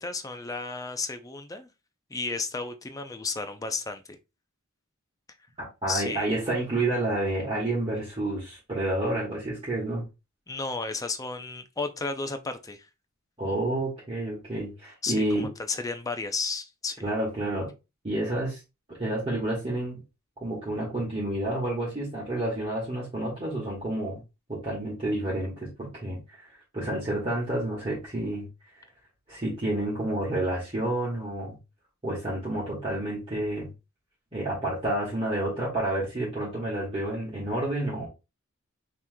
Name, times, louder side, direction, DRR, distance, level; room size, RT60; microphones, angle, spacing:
voice 1, 0.0-1.7 2.1-4.2 5.9-6.3 10.5-12.9 15.0-17.0, left 4 dB, 15° left, 0.4 m, -33 dB
voice 2, 5.8-10.0 13.4-15.5 17.0-17.7 18.0-18.6 18.9-20.0 20.4-24.2 24.5-26.5 26.7-28.5 29.3-31.6 32.0-33.7 34.3-38.1, right 1 dB, 25° right, 1.5 m, -29 dB
5.5 x 3.1 x 2.2 m
head